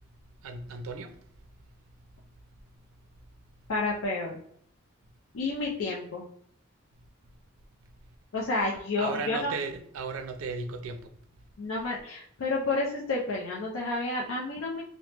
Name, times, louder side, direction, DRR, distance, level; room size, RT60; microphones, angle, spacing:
voice 1, 0.4-1.2 9.0-11.1, right 4 dB, 70° right, 0.4 m, -35 dB
voice 2, 3.7-4.3 5.3-6.2 8.3-9.5 11.6-14.8, left 3 dB, 70° left, 0.5 m, -30 dB
2.9 x 2.0 x 3.2 m
head